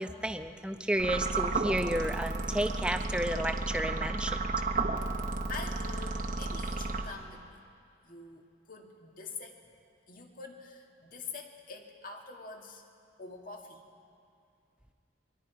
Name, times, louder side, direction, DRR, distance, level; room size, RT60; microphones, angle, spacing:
voice 1, 0.0-4.5, right 1 dB, 5° right, 7 dB, 0.7 m, -32 dB
sound 1, 1.0-7.5, right 3 dB, 40° right, 1.1 m, -33 dB
voice 2, 5.5-7.6 8.0-9.6 10.1-12.8 13.2-13.9, left 4 dB, 45° left, 2 dB, 2.0 m, -45 dB
29.5 x 23.5 x 4.8 m, 2.4 s
head